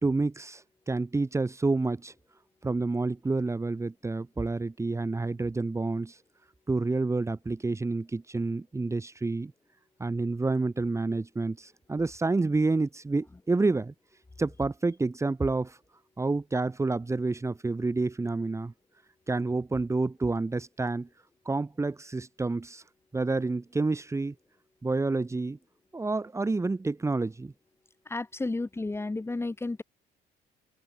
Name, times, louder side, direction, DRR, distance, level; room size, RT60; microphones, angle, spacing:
voice 1, 0.0-2.1 2.6-6.2 6.7-9.5 10.0-13.9 14.4-15.8 16.2-18.7 19.3-21.1 21.5-22.8 23.1-24.3 24.8-25.6 25.9-27.5, right 3 dB, 15° right, 2.5 m, -29 dB
voice 2, 28.1-29.8, left 2 dB, 15° left, 2.9 m, -32 dB
cardioid pair, 110°, 17 cm